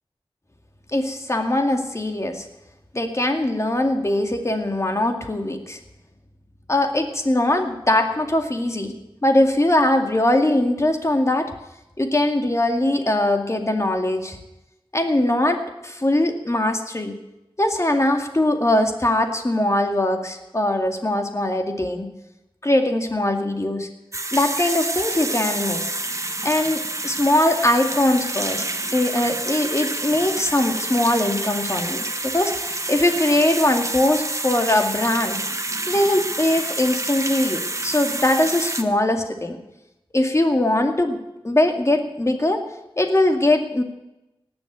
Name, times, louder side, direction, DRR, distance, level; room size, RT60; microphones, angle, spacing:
voice 1, 0.9-2.5 2.9-5.8 6.7-8.9 9.2-11.5 12.0-14.4 14.9-17.2 17.6-22.1 22.6-23.9 24.3-25.8 26.4-28.6 28.9-35.4 35.9-39.6 40.1-41.2 41.4-42.6 43.0-43.8, left 1 dB, 30° left, 4 dB, 2.2 m, -21 dB
sound 1, 24.1-38.8, right 2 dB, 35° right, 1.1 m, -28 dB
18.5 x 7.2 x 9.1 m, 0.92 s
wide cardioid pair, 60°, 9 cm